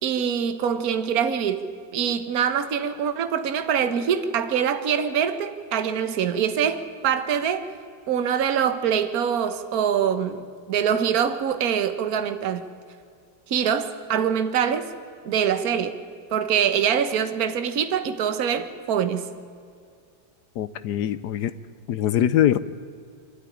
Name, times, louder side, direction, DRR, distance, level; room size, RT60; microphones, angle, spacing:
voice 1, 0.0-1.6 1.9-7.7 8.1-12.6 13.5-14.9 15.2-16.0 16.3-19.3, right 8 dB, 55° right, 10 dB, 1.5 m, -24 dB
voice 2, 20.6-21.5 21.9-22.6, left 11 dB, 65° left, 15 dB, 1.1 m, -22 dB
24.0 x 12.5 x 10.0 m, 2.3 s
omnidirectional pair, 2.1 m